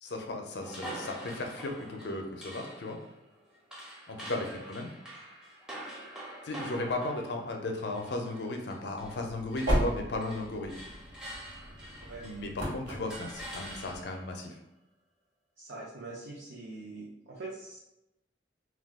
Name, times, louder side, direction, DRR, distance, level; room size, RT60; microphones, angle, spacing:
voice 1, 0.0-3.0 4.1-4.9 6.4-10.7 12.2-14.6, left 2 dB, 60° left, 3 dB, 0.5 m, -35 dB
sound 1, 0.6-9.2 9.5-12.6 13.1-14.3, right 1 dB, 5° right, 0.5 m, -45 dB
sound 2, 9.0-14.0, equal, 85° right, 1.1 m, -35 dB
voice 2, 15.6-17.8, right 2 dB, 70° right, -6 dB, 0.6 m, -43 dB
2.3 x 2.3 x 3.4 m, 0.88 s
head